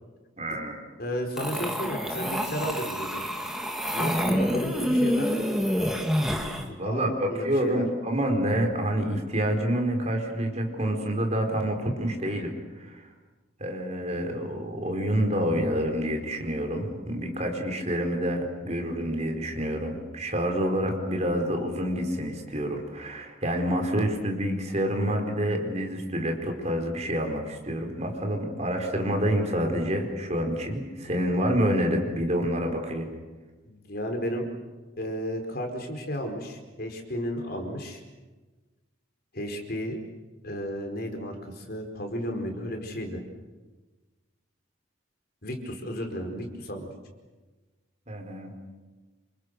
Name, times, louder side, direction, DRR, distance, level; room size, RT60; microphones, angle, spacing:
voice 1, 0.4-0.8 6.3-13.1 13.6-33.1 48.1-48.5, equal, 35° right, 3 dB, 4.6 m, -28 dB
voice 2, 1.0-3.2 3.9-5.3 6.7-7.9 29.5-29.9 33.7-34.5 35.0-38.0 39.3-40.0 40.4-43.2 45.4-46.9, equal, 50° left, 4 dB, 4.7 m, -33 dB
sound 1, 1.4-6.7, equal, ahead, 2.5 m, -27 dB
28.5 x 27.5 x 6.9 m, 1.3 s
head